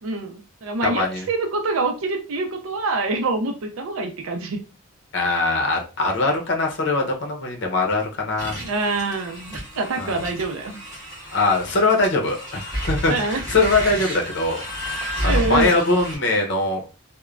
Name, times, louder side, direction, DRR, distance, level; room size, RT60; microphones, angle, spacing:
voice 1, 0.0-4.6 8.6-10.8 13.1-13.4 15.2-15.7, right 3 dB, 80° right, 4 dB, 0.5 m, -25 dB
voice 2, 0.8-1.3 5.1-8.6 10.0-10.2 11.3-16.8, left 3 dB, 55° left, 2 dB, 0.7 m, -22 dB
sound 1, 8.4-16.2, equal, 15° left, 1.3 m, -31 dB
3.1 x 2.1 x 2.4 m, 0.32 s
head